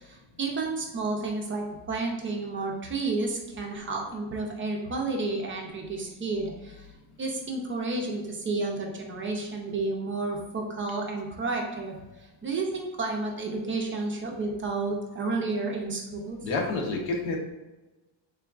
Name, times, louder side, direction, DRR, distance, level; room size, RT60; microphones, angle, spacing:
voice 1, 0.0-6.9 7.2-16.5, right 3 dB, 30° right, 0 dB, 0.4 m, -31 dB
voice 2, 16.4-17.4, left 3 dB, 85° left, 0 dB, 0.9 m, -28 dB
3.8 x 3.4 x 2.3 m, 1.1 s
cardioid pair, 150°, 45 cm